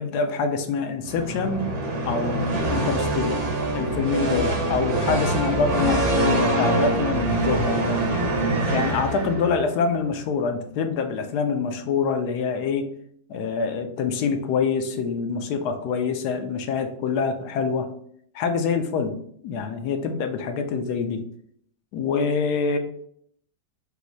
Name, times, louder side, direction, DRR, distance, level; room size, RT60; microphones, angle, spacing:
voice 1, 0.0-1.7 2.1-3.4 3.7-8.0 8.7-12.9 13.3-17.9 18.3-19.2 19.4-21.2 21.9-22.8, left 5 dB, 70° left, 7 dB, 1.1 m, -25 dB
sound 1, 1.0-9.7, right 1 dB, 50° right, 1.1 m, -24 dB
5.3 x 2.0 x 4.5 m, 0.65 s
omnidirectional pair, 1.9 m